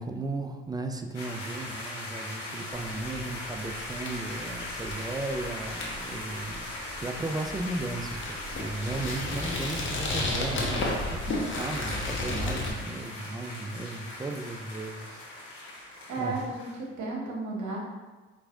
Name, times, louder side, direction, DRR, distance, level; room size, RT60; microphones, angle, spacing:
voice 1, 0.0-6.7 7.0-15.4 16.2-16.4, right 2 dB, 10° right, 5 dB, 0.3 m, -35 dB
sound 1, 1.1-16.8, left 1 dB, 70° left, 1.3 m, -39 dB
sound 2, 2.7-12.7, left 2 dB, 35° left, 1.0 m, -34 dB
voice 2, 16.1-17.8, right 2 dB, 55° right, -3 dB, 1.2 m, -33 dB
4.6 x 2.9 x 2.6 m, 1.2 s
hypercardioid pair, 50°, 35 cm